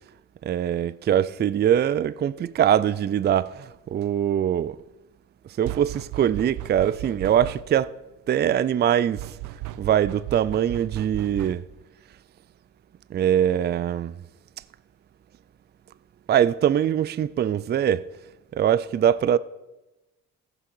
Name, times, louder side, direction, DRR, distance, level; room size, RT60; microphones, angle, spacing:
voice 1, 0.4-4.8 5.6-7.9 8.3-9.4 9.8-11.6 13.1-14.2 16.3-18.1 18.5-19.4, right 10 dB, 35° right, 0.4 m, -22 dB
sound 1, 5.6-7.9 9.2-11.8, right 14 dB, 85° right, 0.5 m, -36 dB
14.5 x 7.0 x 6.1 m
cardioid pair, 90°, 30 cm